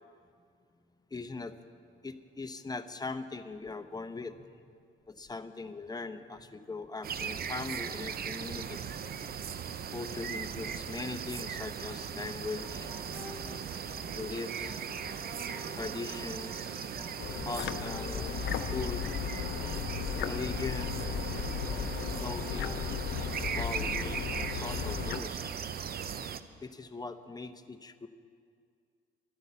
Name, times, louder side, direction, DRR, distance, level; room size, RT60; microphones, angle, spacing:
voice 1, 1.1-1.5 2.0-4.5 5.1-8.8 9.9-12.9 14.1-14.9 15.7-16.8 17.5-19.1 20.2-21.1 22.2-23.0 23.5-25.5 26.6-28.1, left 3 dB, 20° left, 9 dB, 0.8 m, -40 dB
sound 1, 7.0-26.4, right 7 dB, 50° right, 0.7 m, -38 dB
sound 2, 12.6-24.5, left 1 dB, 5° right, 1.3 m, -49 dB
sound 3, 17.2-25.2, left 8 dB, 65° left, 0.7 m, -35 dB
13.0 x 11.0 x 8.2 m, 2.2 s
cardioid pair, 90°, 20 cm